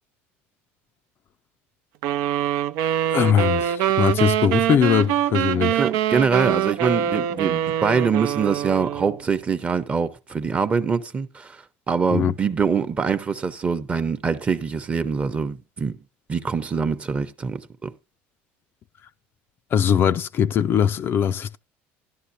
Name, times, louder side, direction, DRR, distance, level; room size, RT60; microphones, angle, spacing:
sound 1, 2.0-9.2, right 11 dB, 70° right, 0.6 m, -24 dB
voice 1, 3.1-5.8 12.1-12.3 19.7-21.6, left 8 dB, 40° left, 0.4 m, -21 dB
voice 2, 5.7-11.6 11.9-15.9 16.3-17.9, right 5 dB, 25° right, 0.9 m, -24 dB
13.0 x 11.0 x 2.7 m
supercardioid pair, 120°, 6 cm